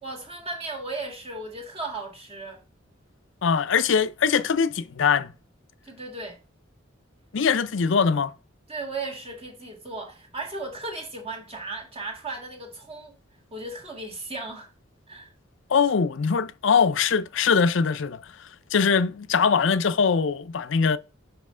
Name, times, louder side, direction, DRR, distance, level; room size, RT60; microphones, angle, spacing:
voice 1, 0.0-2.6 5.8-6.4 8.7-13.1 13.5-14.7 15.1-15.3, right 2 dB, 30° right, 1.8 m, -36 dB
voice 2, 3.4-5.3 7.3-8.3 15.7-18.2 18.7-21.0, left 6 dB, 70° left, 0.5 m, -22 dB
5.7 x 5.5 x 3.7 m
head